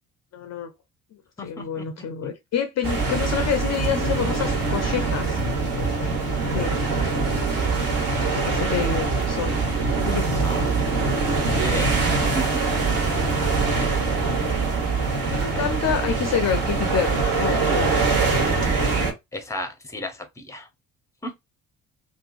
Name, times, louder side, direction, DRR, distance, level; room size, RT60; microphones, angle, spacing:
voice 1, 0.3-0.7 1.4-5.4 5.8-6.1 6.4-6.8 8.2-9.7 10.0-10.5 15.3-17.9, left 7 dB, 40° left, 0.6 m, -28 dB
voice 2, 1.4-1.9 10.4-10.7 11.5-11.9 12.2-12.4 19.3-20.7 21.2-21.3, left 1 dB, 5° left, 0.8 m, -33 dB
sound 1, 2.8-19.1, right 4 dB, 50° right, 1.3 m, -23 dB
2.7 x 2.5 x 2.4 m
figure-of-eight pair, 45°, 44 cm